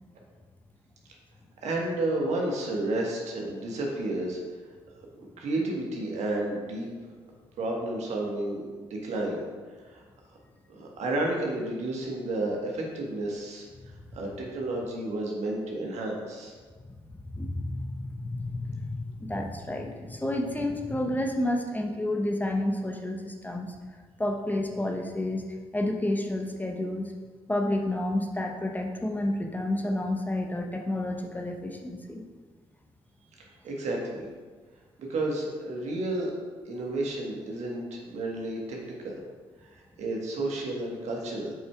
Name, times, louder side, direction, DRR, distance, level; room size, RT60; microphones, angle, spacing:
voice 1, 1.6-4.4 5.2-6.9 7.6-9.4 9.9-10.0 10.7-13.6 14.1-16.5 33.4-34.3 35.0-36.3 36.6-38.8 39.0-39.2 39.6-41.5, right 2 dB, 65° right, -1 dB, 1.3 m, -31 dB
voice 2, 17.1-18.9 19.2-23.7 24.2-25.4 25.7-27.1 27.5-32.2, left 1 dB, 15° left, 1 dB, 0.8 m, -30 dB
7.6 x 5.3 x 2.3 m, 1.5 s
hypercardioid pair, 45°, 13 cm